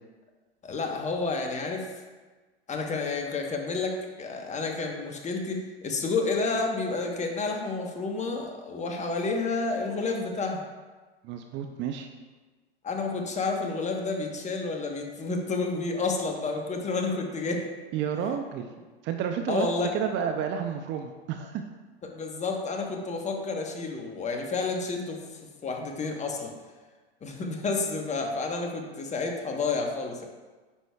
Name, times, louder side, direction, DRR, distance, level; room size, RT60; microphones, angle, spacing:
voice 1, 0.6-1.9 2.7-10.6 12.8-17.6 19.5-19.9 22.0-25.2 25.6-26.5 27.2-30.3, left 3 dB, 20° left, 2 dB, 1.1 m, -30 dB
voice 2, 11.2-12.1 17.9-18.7 19.0-19.7 19.9-21.6, right 8 dB, 35° right, 6 dB, 0.5 m, -30 dB
9.8 x 6.1 x 2.3 m, 1.3 s
hypercardioid pair, 95°, 33 cm